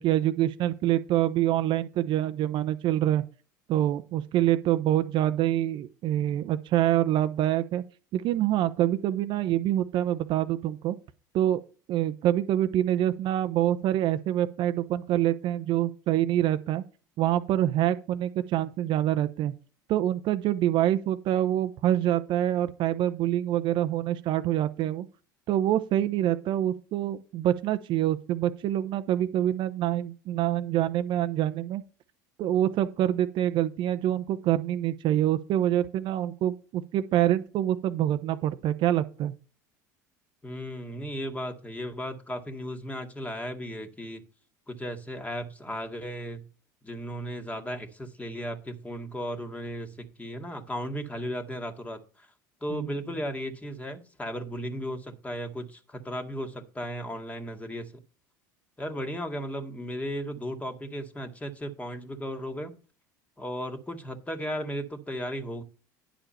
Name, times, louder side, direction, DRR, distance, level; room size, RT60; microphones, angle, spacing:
voice 1, 0.0-3.2 3.7-7.8 8.1-11.0 11.3-11.6 11.9-16.8 17.2-19.5 19.9-25.1 25.5-31.8 32.4-39.3 52.7-53.1, right 12 dB, 50° right, 0.9 m, -26 dB
voice 2, 40.4-44.2 44.7-46.5 46.8-52.3 52.6-57.9 58.8-62.7 63.4-65.6, equal, 15° left, 2.1 m, -35 dB
10.5 x 6.8 x 4.4 m
hypercardioid pair, 75°, 10 cm